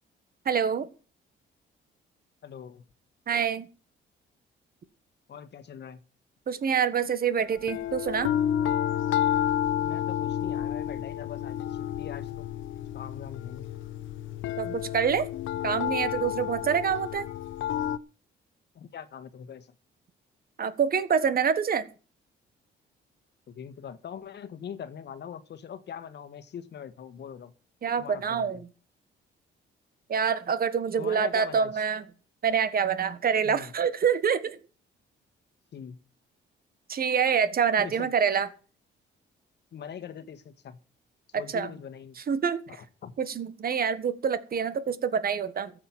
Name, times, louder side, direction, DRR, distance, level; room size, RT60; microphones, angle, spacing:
voice 1, 0.4-0.9 3.3-3.7 6.5-8.3 14.6-15.3 15.6-17.2 20.6-21.8 27.8-28.6 30.1-32.0 32.4-34.6 36.9-38.5 41.3-41.7 42.3-42.6 43.2-45.7, right 7 dB, 50° right, 1.5 m, -26 dB
voice 2, 2.4-2.8 5.3-6.0 9.7-12.5 12.9-13.7 18.7-19.7 23.5-27.5 28.0-28.6 31.0-31.8 33.4-33.7 35.7-36.0 37.8-38.1 39.7-40.8 41.3-42.2 42.7-43.1, left 8 dB, 60° left, 1.4 m, -42 dB
sound 1, 7.6-18.0, left 10 dB, 75° left, 0.7 m, -30 dB
14.0 x 7.7 x 7.3 m
cardioid pair, 90°, 20 cm